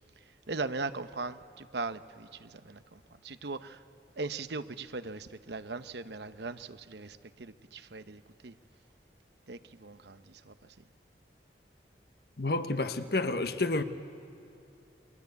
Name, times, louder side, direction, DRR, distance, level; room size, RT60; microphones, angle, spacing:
voice 1, 0.5-3.8 4.2-8.6 9.5-10.8, right 3 dB, 75° right, 1.0 m, -39 dB
voice 2, 12.4-13.8, left 2 dB, 65° left, 1.3 m, -29 dB
29.0 x 23.5 x 8.3 m
head